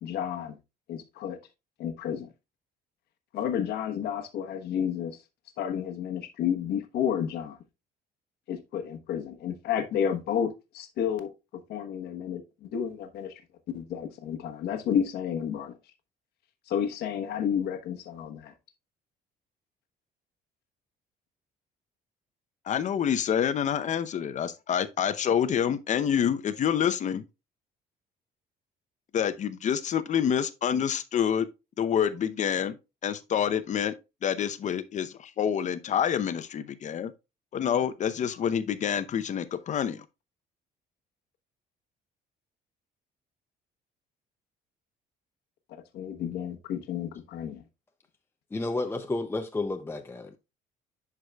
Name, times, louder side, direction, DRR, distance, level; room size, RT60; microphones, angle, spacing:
voice 1, 0.0-0.6 0.9-1.4 1.8-2.3 3.3-5.2 5.6-7.6 8.5-13.4 13.7-15.8 16.7-18.5 45.7-47.6, left 8 dB, 75° left, 1.2 m, -31 dB
voice 2, 22.7-27.2 29.1-31.5 31.8-32.8 33.0-33.9 34.2-37.1 37.5-40.0, left 8 dB, 45° left, 0.7 m, -27 dB
voice 3, 48.5-50.4, left 2 dB, 15° left, 0.5 m, -31 dB
11.0 x 4.8 x 2.3 m
cardioid pair, 110°, 17 cm